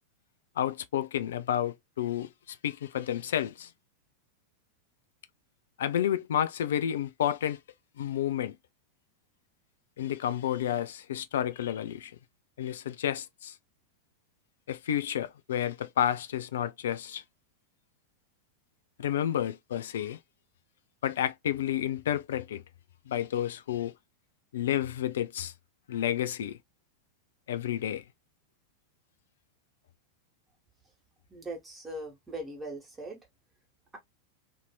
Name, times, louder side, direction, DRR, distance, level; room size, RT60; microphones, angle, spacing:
voice 1, 0.6-3.7 5.8-7.6 8.0-8.6 10.0-12.1 12.6-13.5 14.7-17.2 19.0-20.2 21.0-22.6 23.1-23.9 24.5-25.5 25.9-26.6 27.5-28.0, left 10 dB, 60° left, 0.3 m, -30 dB
voice 2, 31.3-33.2, right 1 dB, 15° right, 1.3 m, -40 dB
2.7 x 2.6 x 2.3 m
figure-of-eight pair, 90°, 0 cm